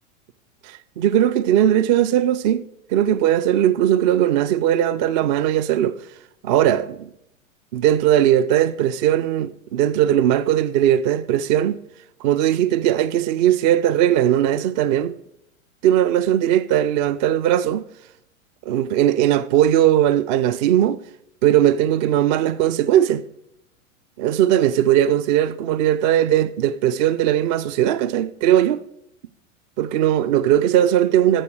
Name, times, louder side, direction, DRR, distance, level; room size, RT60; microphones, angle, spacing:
voice 1, 0.6-2.6 2.9-6.0 6.4-7.1 7.7-11.8 12.2-15.1 15.8-17.8 18.7-21.0 21.4-23.2 24.2-28.8 29.8-31.4, right 11 dB, 35° right, 0.4 m, -19 dB
11.0 x 6.9 x 4.7 m
figure-of-eight pair, 95°, 40 cm